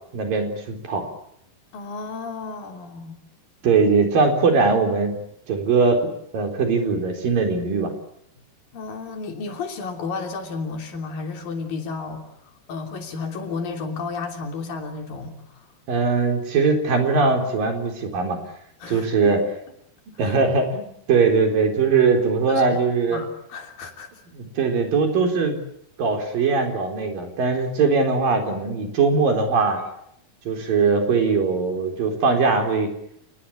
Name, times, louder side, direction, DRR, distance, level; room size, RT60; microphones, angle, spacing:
voice 1, 0.1-1.1 3.6-5.2 5.5-6.0 6.3-7.9 15.9-18.4 18.9-19.4 20.2-23.2 24.4-25.6 26.0-29.8 30.5-32.9, right 4 dB, 55° right, 4 dB, 5.6 m, -20 dB
voice 2, 1.7-3.2 8.7-12.3 12.7-15.7 18.8-19.4 20.1-20.4 22.5-22.8 23.1-24.1 29.8-30.0, left 4 dB, 60° left, 4 dB, 4.8 m, -32 dB
29.5 x 19.5 x 8.7 m, 0.73 s
omnidirectional pair, 4.7 m